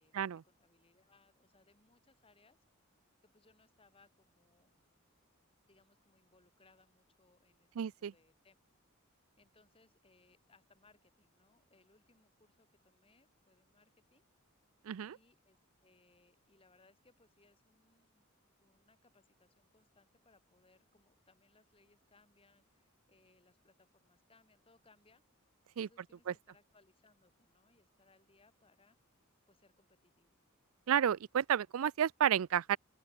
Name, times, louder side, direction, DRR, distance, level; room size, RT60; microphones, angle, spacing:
voice 1, 0.0-2.6 3.2-4.8 5.7-7.7 8.0-8.6 9.4-14.3 15.0-18.2 18.6-25.2 25.8-29.0 29.5-30.4, left 3 dB, 25° left, 2.8 m, -69 dB
voice 2, 7.8-8.1 14.8-15.2 25.8-25.9 26.3-26.4 30.9-32.8, right 9 dB, 75° right, 0.4 m, -31 dB
open air
head